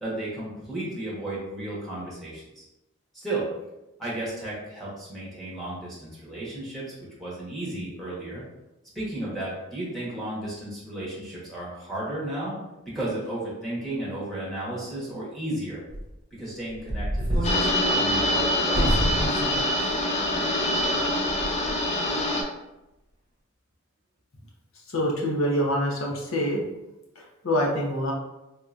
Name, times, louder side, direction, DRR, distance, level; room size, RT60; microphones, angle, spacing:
voice 1, 0.0-2.6 3.1-3.5 4.0-6.9 7.2-8.4 8.9-12.6 12.9-15.8 16.4-18.9, right 1 dB, ahead, -8 dB, 1.1 m, -33 dB
sound 1, 15.9-16.1 16.7-17.7 18.1-18.2 18.7-19.6 20.0-20.1 20.8-21.1 21.4-21.7, right 1 dB, 25° right, 0.9 m, -26 dB
sound 2, 17.4-22.4, left 1 dB, 30° left, 0.4 m, -25 dB
voice 2, 24.9-26.6 27.2-28.1, equal, 65° left, -2 dB, 0.8 m, -25 dB
3.6 x 2.8 x 2.5 m, 0.94 s
head